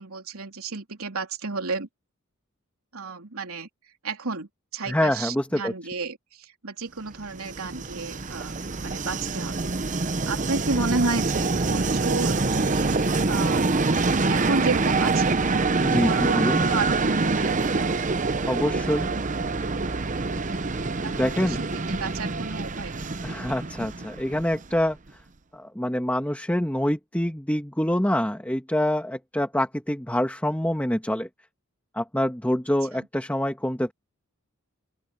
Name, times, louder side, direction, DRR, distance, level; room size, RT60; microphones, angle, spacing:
voice 1, 0.0-1.9 2.9-3.7 4.0-9.6 9.9-13.8 14.3-15.4 16.0-16.4 16.7-17.9 21.0-23.1 32.9-33.1, right 3 dB, 85° right, 3.2 m, -32 dB
voice 2, 4.9-5.7 15.8-16.6 18.5-19.1 21.2-21.6 23.2-25.0 25.5-31.3 31.9-33.9, left 1 dB, 5° left, 1.9 m, -26 dB
Train, 7.2-24.9, right 3 dB, 35° right, 0.8 m, -25 dB
open air
head